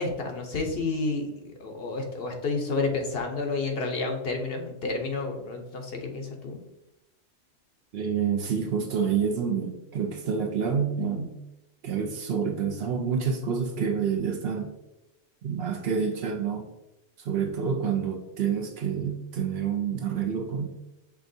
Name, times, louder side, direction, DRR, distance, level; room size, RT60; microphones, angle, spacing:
voice 1, 0.0-6.6, left 3 dB, 60° left, 3 dB, 0.8 m, -30 dB
voice 2, 7.9-11.4 11.8-14.7 15.4-16.7 17.2-20.7, right 6 dB, 60° right, 4 dB, 0.7 m, -28 dB
5.9 x 3.4 x 2.6 m, 0.97 s
omnidirectional pair, 1.3 m